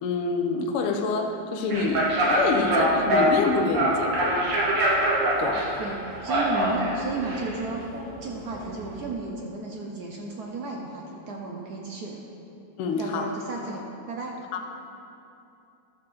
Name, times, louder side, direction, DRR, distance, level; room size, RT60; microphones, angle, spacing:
voice 1, 0.0-4.4 5.4-5.7 12.8-13.3 14.5-14.7, left 4 dB, 85° left, 4 dB, 1.7 m, -27 dB
sound 1, 1.7-9.0, right 1 dB, 85° right, 2.5 m, -25 dB
voice 2, 5.8-7.9 8.2-12.2 13.0-14.4, right 3 dB, 65° right, 0 dB, 1.0 m, -33 dB
12.0 x 6.7 x 4.2 m, 2.7 s
omnidirectional pair, 2.4 m